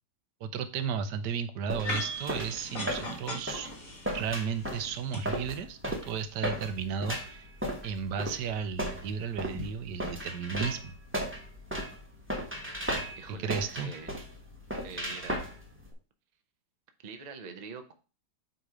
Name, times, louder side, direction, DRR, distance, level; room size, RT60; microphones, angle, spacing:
voice 1, 0.4-3.7 4.1-7.5 7.8-10.9 13.4-13.9, right 6 dB, 75° right, 10 dB, 1.3 m, -34 dB
sound 1, 1.7-15.9, equal, 10° right, 1.1 m, -36 dB
sound 2, 1.8-5.2, left 1 dB, 50° left, 2.3 m, -38 dB
voice 2, 13.1-14.2 14.8-15.4 17.0-17.9, right 5 dB, 50° right, 6 dB, 0.5 m, -44 dB
7.9 x 3.1 x 4.9 m, 0.34 s
omnidirectional pair, 1.9 m